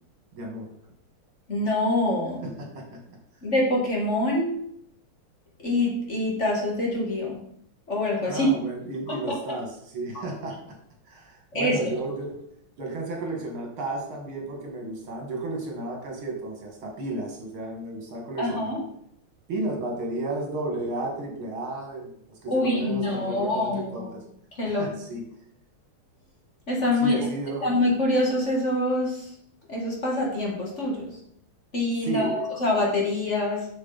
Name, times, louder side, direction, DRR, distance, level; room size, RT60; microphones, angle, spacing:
voice 1, 0.3-0.7 2.4-3.2 8.2-10.7 11.1-12.4 12.8-18.8 19.5-24.2 24.8-25.2 27.0-27.7 32.0-32.5, right 2 dB, 75° right, 1 dB, 2.6 m, -33 dB
voice 2, 1.5-2.5 3.4-4.6 5.6-7.4 7.9-8.5 9.1-9.4 11.5-11.9 18.4-18.8 22.5-24.1 24.6-24.9 26.7-27.3 27.6-29.3 29.7-31.2 31.7-33.7, left 1 dB, 35° left, -3 dB, 1.9 m, -25 dB
7.6 x 6.6 x 4.0 m, 0.71 s
omnidirectional pair, 2.3 m